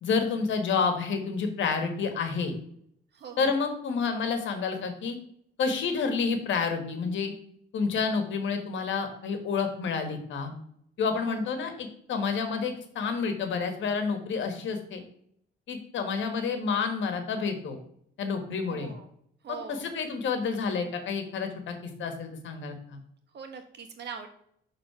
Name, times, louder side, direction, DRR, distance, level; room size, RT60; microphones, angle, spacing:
voice 1, 0.0-2.5 3.4-5.2 5.6-7.3 7.7-10.5 11.0-15.0 15.7-17.8 18.2-18.9 19.5-23.0, left 5 dB, 70° left, 7 dB, 1.5 m, -29 dB
voice 2, 3.1-3.5 11.2-11.5 18.7-19.0 19.4-19.9 23.3-24.3, right 6 dB, 60° right, 5 dB, 1.4 m, -42 dB
6.4 x 3.7 x 5.7 m, 0.68 s
cardioid pair, 90°, 20 cm